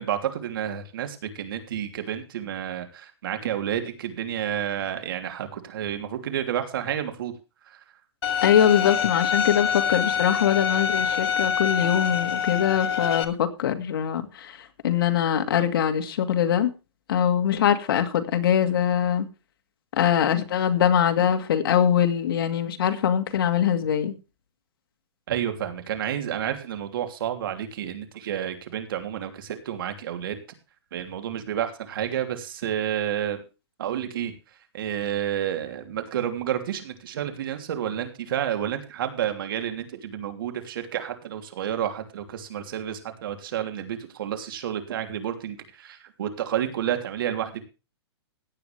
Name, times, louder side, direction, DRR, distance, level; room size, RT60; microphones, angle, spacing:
voice 1, 0.0-7.3 7.6-7.8 25.3-30.4 30.9-33.4 33.8-34.3 34.7-47.6, right 10 dB, 55° right, 3.1 m, -30 dB
Bowed string instrument, 8.2-13.2, left 7 dB, 70° left, 2.4 m, -25 dB
voice 2, 8.4-14.6 14.8-16.7 17.1-19.3 20.0-24.1, left 9 dB, 55° left, 2.1 m, -22 dB
16.5 x 9.4 x 3.4 m
hypercardioid pair, 165°, 14 cm